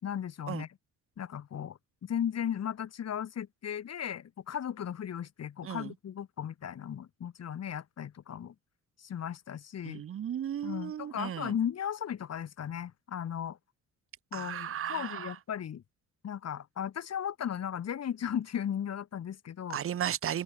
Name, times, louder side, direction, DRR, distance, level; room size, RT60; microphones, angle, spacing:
voice 1, 0.0-0.7 1.2-8.5 9.0-10.0 10.6-13.6 14.3-15.8 16.2-19.8, left 9 dB, 55° left, 3.9 m, -36 dB
voice 2, 5.6-5.9 9.8-11.5 14.3-15.3 19.7-20.4, right 10 dB, 45° right, 0.8 m, -35 dB
open air
cardioid pair, 90°, 30 cm